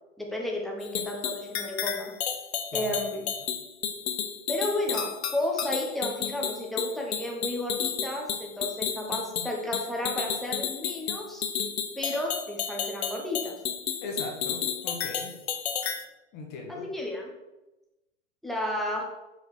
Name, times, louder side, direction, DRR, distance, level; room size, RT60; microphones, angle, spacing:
voice 1, 0.2-2.1 2.7-3.3 4.5-11.4 12.0-13.6 16.7-17.3 18.4-19.0, left 1 dB, ahead, -1 dB, 1.1 m, -32 dB
sound 1, 0.8-16.0, left 8 dB, 55° left, 1.0 m, -32 dB
voice 2, 2.7-3.2 14.0-15.3 16.3-16.8, left 3 dB, 25° left, 1 dB, 1.5 m, -39 dB
5.4 x 4.9 x 6.3 m, 1.0 s
hypercardioid pair, 135°, 38 cm